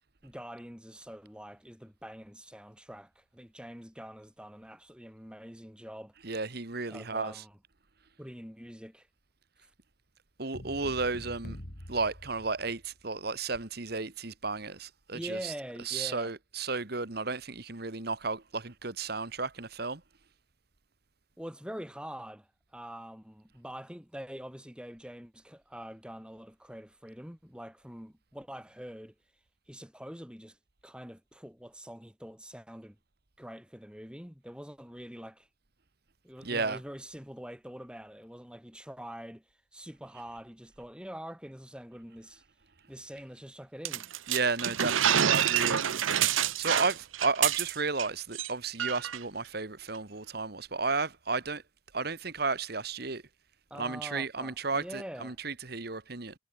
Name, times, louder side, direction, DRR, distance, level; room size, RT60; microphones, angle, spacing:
voice 1, 0.2-6.1 6.9-7.6 8.2-9.1 15.1-16.3 21.4-29.1 29.7-30.6 30.8-33.0 33.4-35.5 36.2-39.4 39.7-42.4 42.9-44.1 53.7-55.4, equal, 5° right, 5.6 m, -45 dB
voice 2, 6.2-7.4 10.4-11.6 11.9-15.5 15.8-20.0 36.4-36.8 44.3-51.6 51.9-53.2 53.8-56.3, right 4 dB, 50° right, 1.6 m, -33 dB
sound 1, 10.5-13.0, equal, 45° left, 3.5 m, -45 dB
sound 2, 43.8-48.1 48.3-48.5 48.8-49.2, right 10 dB, 85° right, 0.7 m, -27 dB
head